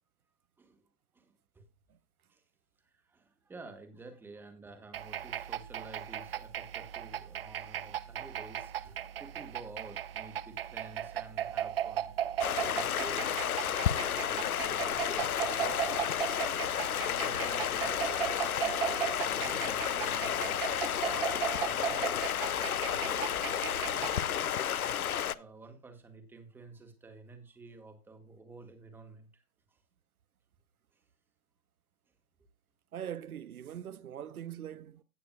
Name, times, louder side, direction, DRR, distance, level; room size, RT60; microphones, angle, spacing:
voice 1, 1.1-1.7 2.3-2.4 2.8-12.1 12.5-16.3 16.5-18.3 19.1-23.4 23.7-29.4 29.7-29.8 30.9-31.0 34.8-34.9, right 3 dB, 5° right, 1.2 m, -51 dB
sound 1, 4.9-24.2, right 10 dB, 45° right, 0.4 m, -37 dB
Stream, 12.4-25.3, left 9 dB, 90° left, 0.7 m, -32 dB
voice 2, 32.9-35.0, right 10 dB, 90° right, 0.7 m, -42 dB
16.5 x 6.8 x 2.2 m
hypercardioid pair, 145°, 42 cm